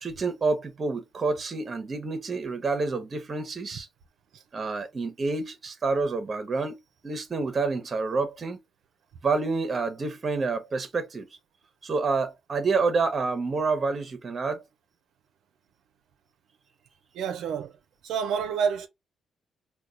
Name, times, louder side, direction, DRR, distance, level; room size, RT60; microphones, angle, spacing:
voice 1, 0.0-3.9 4.5-6.8 7.0-8.6 9.2-11.3 11.8-14.6, right 4 dB, 35° right, 0.8 m, -28 dB
voice 2, 17.1-17.7 18.0-18.9, right 7 dB, 80° right, 0.5 m, -28 dB
4.4 x 2.2 x 2.5 m
cardioid pair, 90°, 0 cm